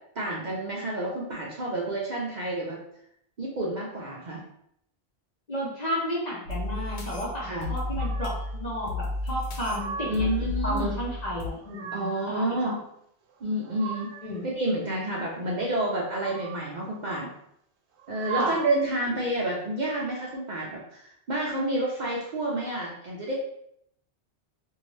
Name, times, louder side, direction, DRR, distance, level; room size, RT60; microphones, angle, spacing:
voice 1, 0.2-2.8 3.4-4.4 7.4-7.7 10.1-10.9 11.9-12.8 13.4-14.1 14.4-17.3 18.1-23.3, right 1 dB, 50° right, -3 dB, 0.6 m, -29 dB
voice 2, 5.5-10.3 10.6-12.8 14.2-14.5 18.3-18.6, equal, 40° left, -5 dB, 1.0 m, -32 dB
sound 1, 6.5-11.5, left 2 dB, 80° left, 0.9 m, -33 dB
sound 2, 8.0-8.6 9.4-10.4 11.4-12.4 13.3-14.4 16.0-16.8 17.9-19.0, right 7 dB, 85° right, 0.9 m, -39 dB
2.7 x 2.7 x 3.1 m, 0.73 s
omnidirectional pair, 1.1 m